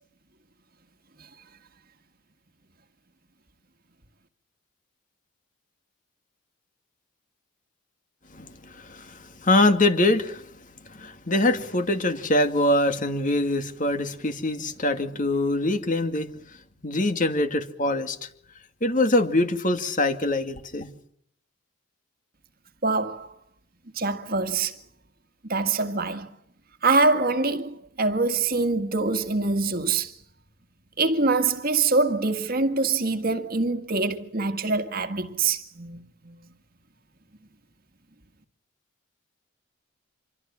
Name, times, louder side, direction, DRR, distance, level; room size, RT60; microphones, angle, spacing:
voice 1, 8.3-10.5 10.9-16.6 16.8-18.3 18.8-20.9, left 2 dB, 40° left, 2.4 m, -24 dB
voice 2, 22.8-23.3 24.0-24.7 25.5-26.3 26.8-30.1 31.0-36.4, right 3 dB, 45° right, 1.9 m, -24 dB
27.0 x 23.5 x 7.4 m
head